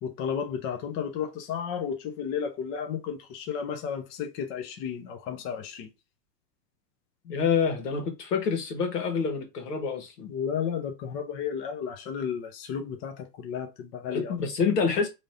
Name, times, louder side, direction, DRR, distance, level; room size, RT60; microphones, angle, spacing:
voice 1, 0.0-5.9 10.2-14.4, left 7 dB, 25° left, 0.6 m, -33 dB
voice 2, 7.2-10.3 14.1-15.1, left 5 dB, 70° left, 1.5 m, -27 dB
3.1 x 2.7 x 3.9 m
hypercardioid pair, 110°, 49 cm